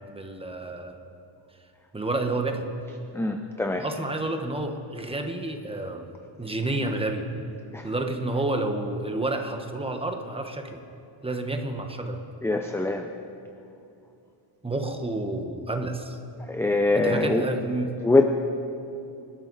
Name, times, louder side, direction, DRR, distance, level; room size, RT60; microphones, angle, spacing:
voice 1, 0.1-1.0 1.9-2.7 3.8-6.1 6.4-7.3 7.8-10.8 11.2-12.2 14.6-16.2 16.9-18.0, right 2 dB, 10° right, 4 dB, 1.2 m, -30 dB
voice 2, 3.1-3.8 7.7-7.9 12.4-13.1 16.5-17.4 18.0-18.3, left 2 dB, 5° left, 5 dB, 0.5 m, -23 dB
28.0 x 12.5 x 4.1 m, 2.7 s
cardioid pair, 150°, 48 cm